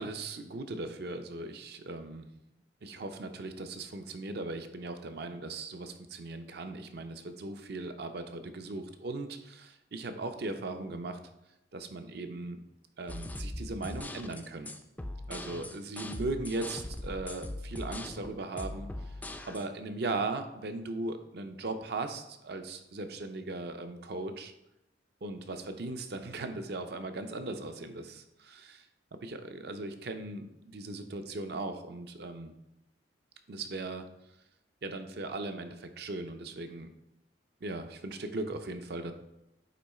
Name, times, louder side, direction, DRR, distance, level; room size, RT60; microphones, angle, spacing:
voice 1, 0.0-2.3 2.8-11.2 11.7-12.6 13.0-14.7 15.3-18.9 19.5-24.5 25.2-28.9 29.1-32.5 33.5-34.1 34.8-36.9 37.6-39.1, right 2 dB, 60° right, 7 dB, 0.6 m, -38 dB
sound 1, 13.1-19.6, left 1 dB, 10° left, 0.3 m, -40 dB
8.4 x 3.1 x 4.2 m, 0.88 s
head